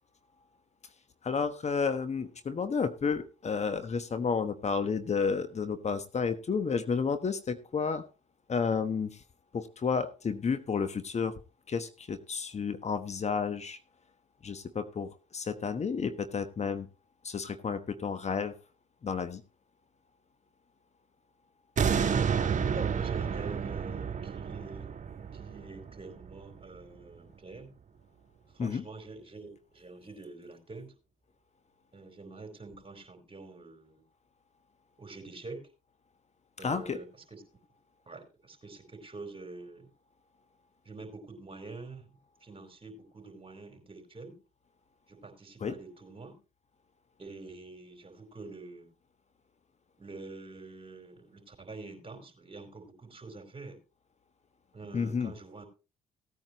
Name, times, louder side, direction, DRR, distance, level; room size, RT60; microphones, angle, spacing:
voice 1, 1.2-8.0 8.5-9.2 9.5-11.3 11.7-13.8 14.4-16.9 17.2-18.5 19.0-19.4 28.6-28.8 36.6-37.0 45.6-45.8 54.9-55.3, left 5 dB, 45° left, 11 dB, 1.2 m, -31 dB
sound 1, 21.8-26.9 27.3-27.4, right 7 dB, 50° right, 1.4 m, -31 dB
voice 2, 22.4-24.9 25.3-27.7 28.5-30.9 31.9-34.0 35.0-35.7 36.6-37.4 38.1-39.9 40.8-42.1 42.4-44.4 45.1-46.4 47.2-48.9 50.0-53.8 54.7-55.7, right 3 dB, 35° right, 5 dB, 4.3 m, -46 dB
17.5 x 9.1 x 3.0 m, 0.32 s
supercardioid pair, 55°, 16 cm